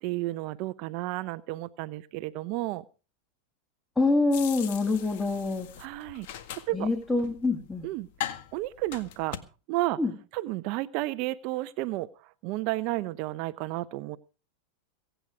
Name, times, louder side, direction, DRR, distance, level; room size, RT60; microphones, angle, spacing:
voice 1, 0.0-2.8 5.8-6.3 6.7-6.9 7.8-8.1 8.5-9.4 9.7-10.0 10.3-14.2, right 18 dB, 50° right, 15 dB, 0.7 m, -32 dB
voice 2, 4.0-5.7 6.7-7.9 10.0-10.1, left 3 dB, 10° left, 6 dB, 2.1 m, -26 dB
sound 1, 4.3-9.4, left 11 dB, 60° left, 1.8 m, -40 dB
23.0 x 9.1 x 4.8 m, 0.36 s
hypercardioid pair, 115°, 0 cm